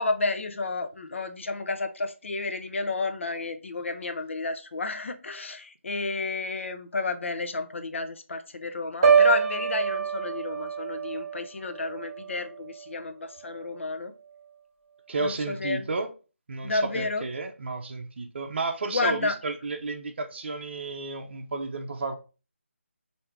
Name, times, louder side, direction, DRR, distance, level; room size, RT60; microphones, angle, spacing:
voice 1, 0.0-14.1 15.2-15.9 16.6-17.3 18.9-19.4, left 3 dB, 65° left, 0.6 m, -31 dB
Piano, 9.0-13.0 13.4-13.7, right 6 dB, 30° right, 1.1 m, -26 dB
voice 2, 15.1-16.1 16.5-22.1, right 3 dB, 55° right, 0.6 m, -32 dB
4.5 x 2.7 x 3.3 m
figure-of-eight pair, 165°, 7 cm